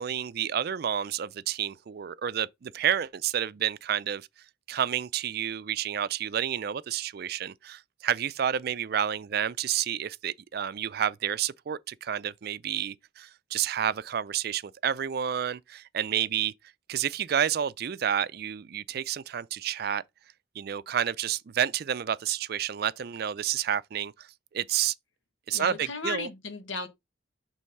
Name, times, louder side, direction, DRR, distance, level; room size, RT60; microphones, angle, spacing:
voice 1, 0.0-4.3 4.7-16.5 16.9-20.0 20.6-24.3 24.5-24.9 25.5-26.3, right 9 dB, 50° right, 0.4 m, -30 dB
voice 2, 25.5-26.9, left 4 dB, 85° left, 1.4 m, -35 dB
6.4 x 3.4 x 5.4 m
head